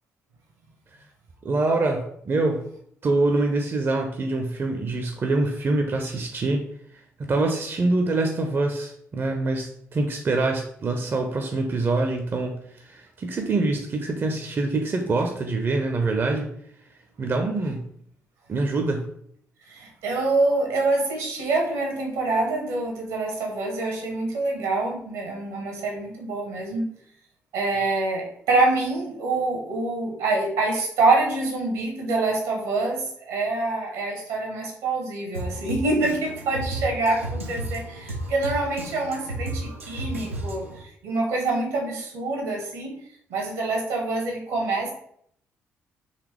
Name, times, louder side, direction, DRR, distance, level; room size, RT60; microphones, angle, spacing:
voice 1, 1.4-2.6 3.0-6.6 7.3-16.5 17.2-17.8 18.5-19.0, right 2 dB, 35° right, 4 dB, 0.5 m, -25 dB
voice 2, 19.7-26.9 27.5-40.6 41.0-43.0 43.3-44.9, right 2 dB, 70° right, 1 dB, 1.0 m, -26 dB
Drum kit, 35.3-40.8, right 1 dB, 85° right, 0.4 m, -33 dB
4.1 x 2.9 x 3.1 m, 0.67 s
figure-of-eight pair, 40°, 7 cm